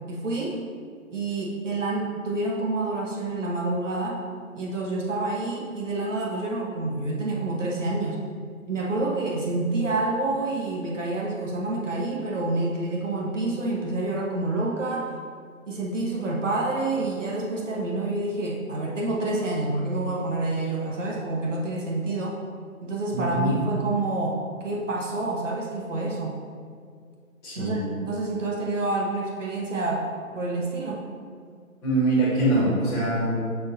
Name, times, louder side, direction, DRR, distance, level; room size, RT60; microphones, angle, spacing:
voice 1, 0.1-0.6 1.1-4.2 4.5-8.2 8.7-15.1 15.7-22.4 22.8-26.3 27.6-30.1 30.3-31.0, right 2 dB, 60° right, -2 dB, 1.2 m, -28 dB
voice 2, 23.1-23.6 27.4-27.8 31.8-33.4, right 1 dB, 5° left, -13 dB, 1.4 m, -23 dB
6.4 x 6.1 x 2.7 m, 2.1 s
hypercardioid pair, 165°, 42 cm